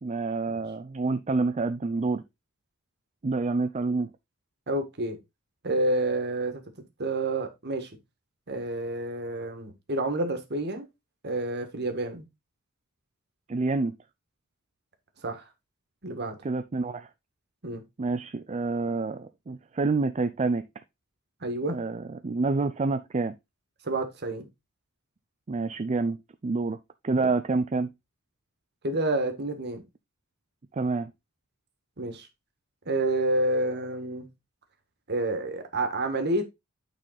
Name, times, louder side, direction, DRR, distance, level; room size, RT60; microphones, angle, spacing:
voice 1, 0.0-2.2 3.2-4.1 13.5-13.9 16.4-17.1 18.0-20.7 21.7-23.4 25.5-26.2 26.4-26.8 27.0-27.9 30.7-31.1, right 3 dB, 30° right, 0.4 m, -28 dB
voice 2, 4.7-5.2 5.6-6.6 7.0-7.9 8.5-10.9 11.2-12.2 15.2-15.4 16.0-16.4 17.6-17.8 21.4-21.8 23.8-24.5 28.8-29.8 32.0-32.3 32.8-34.3 35.1-36.4, right 2 dB, 50° right, 1.6 m, -29 dB
8.9 x 4.2 x 4.0 m
head